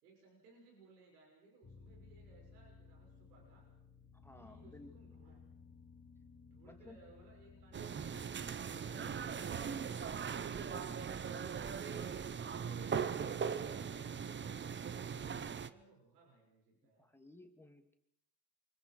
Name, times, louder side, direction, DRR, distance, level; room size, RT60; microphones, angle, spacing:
voice 1, 0.0-3.7 4.3-5.4 6.4-10.1 12.0-17.1, right 3 dB, 85° right, -1 dB, 6.6 m, -64 dB
sound 1, 1.6-13.3, left 4 dB, 25° left, 2.9 m, -60 dB
voice 2, 4.1-5.1 6.6-7.0 10.5-11.2 17.0-17.9, left 1 dB, 5° left, 5 dB, 2.8 m, -57 dB
sound 2, 7.7-15.7, right 7 dB, 25° right, 1.0 m, -40 dB
29.0 x 25.0 x 4.9 m, 0.76 s
hypercardioid pair, 85°, 45 cm